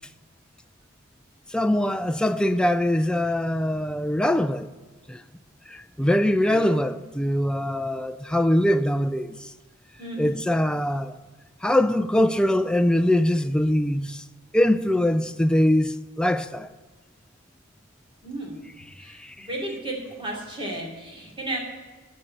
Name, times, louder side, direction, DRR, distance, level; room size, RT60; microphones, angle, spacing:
voice 1, 1.5-4.7 5.1-5.2 5.7-9.4 10.2-11.1 11.6-14.2 14.5-16.7, left 1 dB, 5° left, 0.4 m, -22 dB
voice 2, 6.4-6.7 10.0-10.4 18.2-18.6 19.0-21.6, right 1 dB, 25° right, 2.9 m, -34 dB
11.0 x 6.7 x 8.7 m
head